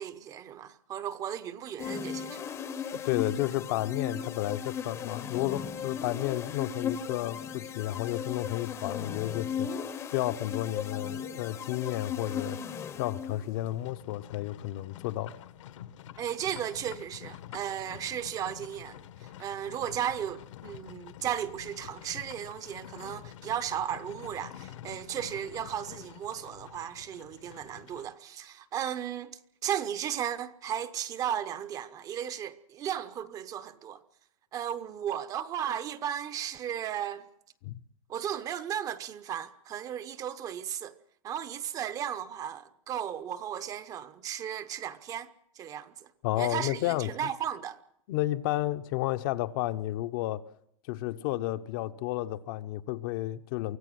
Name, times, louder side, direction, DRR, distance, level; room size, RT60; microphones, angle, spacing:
voice 1, 0.0-2.6 16.2-34.0 34.5-37.2 38.1-41.0 41.2-45.3 45.6-46.1 46.4-47.8, right 9 dB, 20° right, 0.8 m, -35 dB
sound 1, 1.8-13.6, left 7 dB, 15° left, 0.9 m, -37 dB
voice 2, 2.9-9.7 10.1-12.6 13.0-15.3 37.6-37.8 46.2-47.1 48.1-50.4 50.9-53.8, left 15 dB, 40° left, 0.9 m, -32 dB
Livestock farm animals working animals, 13.5-28.1, left 11 dB, 70° left, 1.5 m, -48 dB
24.5 x 16.0 x 7.8 m
supercardioid pair, 165°, 17 cm